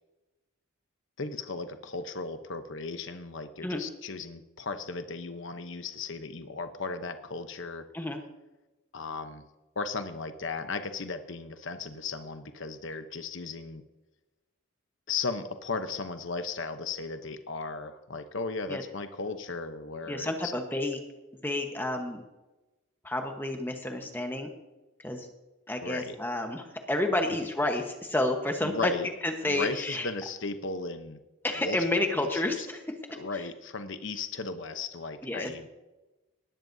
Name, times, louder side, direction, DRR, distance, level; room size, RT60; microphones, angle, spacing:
voice 1, 1.2-7.8 8.9-9.4 9.8-13.8 15.1-20.5 25.8-26.2 28.6-29.1 29.4-31.2 31.6-32.7 33.1-35.7, left 4 dB, 60° left, 9 dB, 0.8 m, -36 dB
voice 2, 20.1-21.0 21.4-22.2 23.0-24.5 25.0-25.3 25.7-28.9 29.2-30.1 31.4-32.8 35.2-35.5, left 1 dB, 10° left, 4 dB, 1.1 m, -30 dB
19.0 x 12.0 x 2.7 m, 1.1 s
head